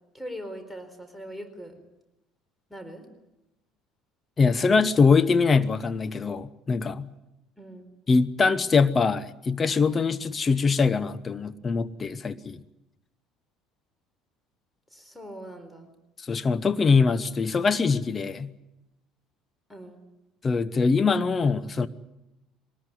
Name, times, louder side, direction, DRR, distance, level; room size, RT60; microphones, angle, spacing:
voice 1, 0.1-1.8 2.7-3.1 7.6-7.9 14.9-15.9 19.7-20.0, equal, 5° left, 8 dB, 4.2 m, -41 dB
voice 2, 4.4-7.1 8.1-12.6 16.2-18.5 20.4-21.9, left 4 dB, 30° left, 13 dB, 0.9 m, -23 dB
22.5 x 19.0 x 9.8 m, 0.94 s
figure-of-eight pair, 60°, 0 cm